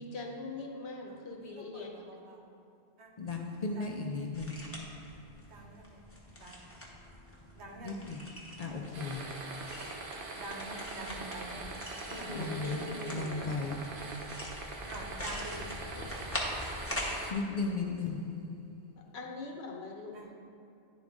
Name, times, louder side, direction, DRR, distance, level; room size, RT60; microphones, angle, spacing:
voice 1, 0.0-2.0 12.1-13.5 16.0-16.1 19.1-20.3, left 3 dB, 75° left, 1 dB, 1.1 m, -42 dB
voice 2, 1.1-2.6 3.0-3.1 3.7-4.0 5.5-6.0 6.3-6.8 7.6-8.0 10.3-11.7 12.1-12.6 14.9-15.7 19.0-19.1 20.1-20.3, right 2 dB, 90° right, 0 dB, 1.2 m, -47 dB
voice 3, 3.2-5.1 7.8-9.6 12.3-12.8 13.1-14.1 17.3-18.8, left 3 dB, 50° left, 1 dB, 0.5 m, -36 dB
sound 1, 4.3-17.2, left 1 dB, 15° left, 0.8 m, -43 dB
sound 2, 8.9-17.3, right 3 dB, 60° right, 0.9 m, -43 dB
10.5 x 3.8 x 3.5 m, 2.6 s
omnidirectional pair, 1.1 m